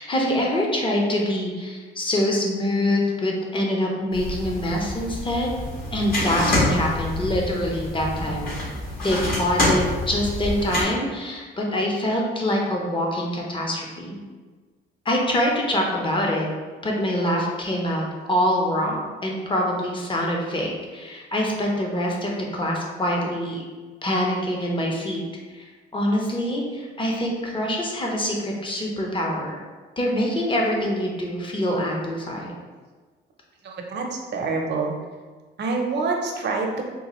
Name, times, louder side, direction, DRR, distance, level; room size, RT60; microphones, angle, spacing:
voice 1, 0.0-5.5 5.9-8.5 9.0-14.2 15.0-16.5 16.8-23.6 24.0-25.2 25.5-25.7 25.9-29.6 30.0-32.5, left 1 dB, 25° left, -1 dB, 0.8 m, -25 dB
sound 1, 4.1-10.8, left 1 dB, 50° left, 1.4 m, -27 dB
voice 2, 33.6-34.9 35.6-36.8, right 4 dB, 60° right, 1 dB, 0.6 m, -26 dB
3.8 x 2.3 x 3.0 m, 1.4 s
cardioid pair, 90°, 20 cm